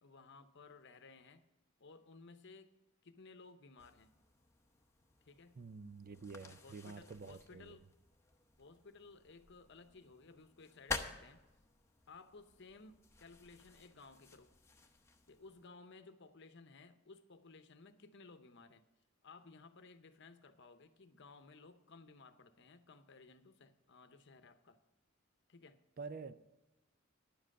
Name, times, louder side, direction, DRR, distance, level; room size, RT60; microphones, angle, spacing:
voice 1, 0.0-1.5 1.8-2.7 3.0-4.1 5.2-5.6 6.4-7.9 8.6-11.5 12.1-14.5 15.3-18.8 19.2-24.8 25.5-25.8, left 3 dB, 55° left, 10 dB, 0.8 m, -58 dB
sound 1, 3.8-15.7, left 4 dB, 15° left, 0.8 m, -50 dB
voice 2, 5.6-7.8 26.0-26.3, right 4 dB, 45° right, 13 dB, 0.5 m, -48 dB
10.5 x 7.6 x 6.5 m, 1.0 s
head